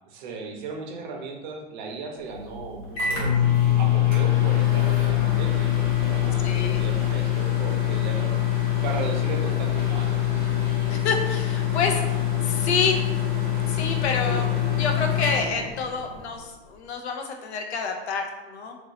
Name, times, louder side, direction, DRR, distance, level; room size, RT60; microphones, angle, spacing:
voice 1, 0.1-3.4 3.8-10.5 14.3-14.5, right 4 dB, 45° right, 2 dB, 0.6 m, -36 dB
Microwave oven, 2.3-16.3, left 11 dB, 15° left, 0.5 m, -24 dB
voice 2, 6.4-6.8 10.9-12.0 12.4-13.0 13.7-14.5 14.8-18.8, left 5 dB, 90° left, 3 dB, 0.7 m, -28 dB
3.0 x 2.6 x 2.9 m, 1.1 s
supercardioid pair, 160°, 32 cm